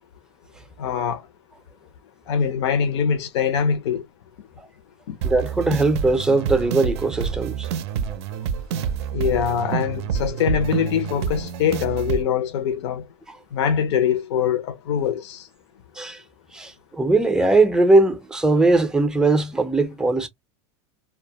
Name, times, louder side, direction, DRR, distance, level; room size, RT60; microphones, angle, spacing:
voice 1, 0.8-1.2 2.3-4.0 5.1-5.2 9.1-13.1 13.5-15.5, left 8 dB, 80° left, 0.6 m, -23 dB
voice 2, 5.2-7.7 8.1-8.2 16.0-16.2 16.5-20.3, right 2 dB, 5° right, 0.5 m, -20 dB
sound 1, 5.2-12.2, right 7 dB, 75° right, 0.4 m, -28 dB
2.2 x 2.1 x 2.7 m
supercardioid pair, 135°, 14 cm